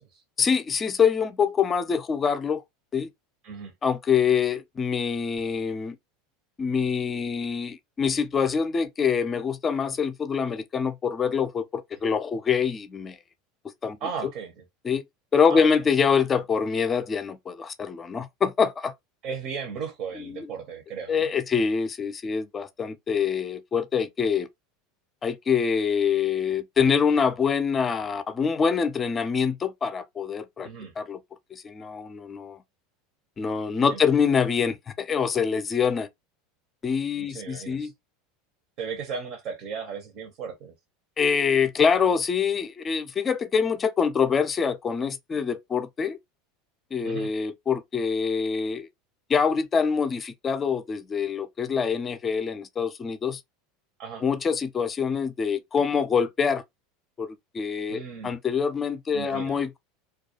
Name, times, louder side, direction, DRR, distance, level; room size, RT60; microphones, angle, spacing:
voice 1, 0.4-2.6 2.9-3.1 3.8-6.0 6.6-13.2 13.8-14.0 14.8-15.0 15.3-18.9 20.2-20.5 21.1-24.5 25.2-30.7 31.0-31.2 31.5-32.6 33.4-36.1 36.8-37.9 41.2-46.2 46.9-48.9 49.3-53.4 54.2-56.6 57.2-59.8, left 6 dB, 30° left, 0.4 m, -25 dB
voice 2, 14.0-14.6 15.5-15.7 19.2-21.3 30.6-30.9 33.9-34.2 37.1-37.9 38.8-40.7 47.0-47.3 54.0-54.2 57.9-58.4 59.1-59.6, right 6 dB, 55° right, 0.7 m, -36 dB
2.3 x 2.2 x 2.7 m
hypercardioid pair, 85°, 0 cm